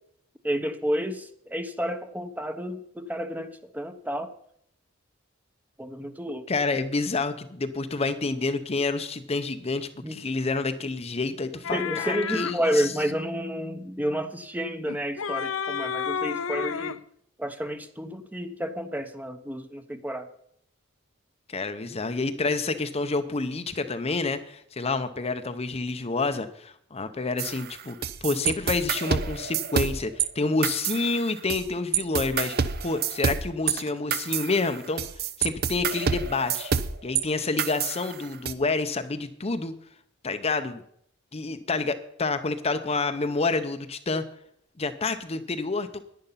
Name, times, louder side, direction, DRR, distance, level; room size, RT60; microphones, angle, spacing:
voice 1, 0.4-1.2 1.5-4.3 5.8-6.5 10.0-10.2 11.7-17.0 17.4-20.3, equal, 10° right, 8 dB, 0.9 m, -30 dB
voice 2, 6.5-13.0 21.5-32.6 32.8-35.0 35.4-36.7 37.0-39.7 40.2-40.8 41.3-44.2 44.8-45.9, left 3 dB, 30° left, 9 dB, 0.7 m, -28 dB
sound 1, 11.6-12.6 14.9-17.0, left 7 dB, 85° left, 0.6 m, -31 dB
sound 2, 27.4-30.3 30.6-31.7 31.9-37.2 37.6-38.5, right 7 dB, 50° right, 0.7 m, -28 dB
10.5 x 10.5 x 5.6 m, 0.69 s
head